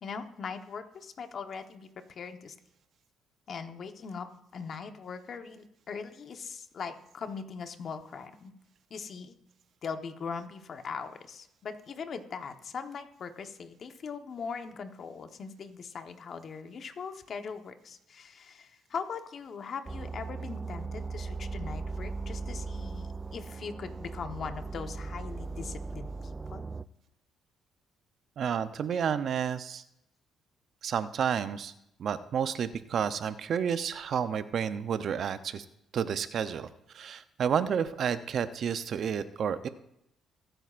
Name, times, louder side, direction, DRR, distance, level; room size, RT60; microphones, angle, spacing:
voice 1, 0.0-2.6 3.5-4.3 4.5-8.5 8.9-9.4 9.8-26.7, left 5 dB, 55° left, 7 dB, 1.1 m, -40 dB
sound 1, 19.9-26.8, right 4 dB, 20° right, 0.4 m, -38 dB
voice 2, 28.4-29.8 30.8-31.7 32.0-35.6 35.9-36.7 36.9-39.7, right 7 dB, 60° right, 12 dB, 0.7 m, -30 dB
23.0 x 8.9 x 2.5 m, 0.81 s
cardioid pair, 85°, 0 cm